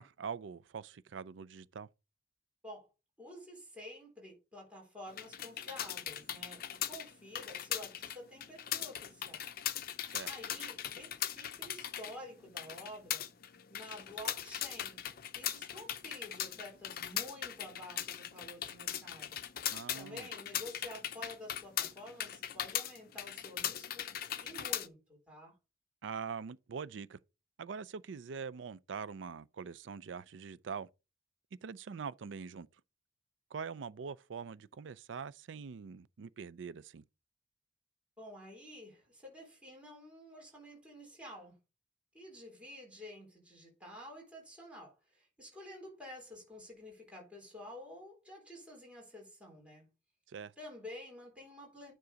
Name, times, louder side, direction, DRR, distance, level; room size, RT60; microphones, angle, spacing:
voice 1, 0.0-1.9 10.1-10.3 19.7-20.3 26.0-27.2 27.6-30.9 31.6-32.7 33.5-37.0 50.3-50.5, right 6 dB, 90° right, 0.4 m, -43 dB
voice 2, 3.2-9.5 10.2-13.3 13.7-15.0 15.3-19.4 19.9-24.1 24.4-25.6 38.2-41.6 42.1-49.9 50.6-51.9, left 1 dB, 5° right, 3.9 m, -50 dB
sound 1, 5.1-24.9, left 10 dB, 55° left, 0.6 m, -39 dB
9.6 x 3.8 x 5.1 m
head